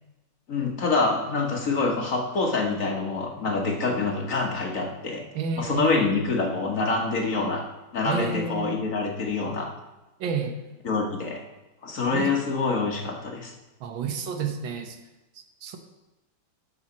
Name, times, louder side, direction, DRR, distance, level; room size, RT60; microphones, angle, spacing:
voice 1, 0.5-5.2 5.6-7.6 7.9-9.7 10.8-11.4 11.8-13.5, left 3 dB, 50° left, 1 dB, 1.3 m, -26 dB
voice 2, 5.3-6.1 8.0-8.7 10.2-10.6 12.1-12.3 13.8-15.0 15.3-15.8, right 5 dB, 80° right, 5 dB, 1.7 m, -30 dB
12.5 x 5.6 x 4.1 m, 1.0 s
omnidirectional pair, 2.1 m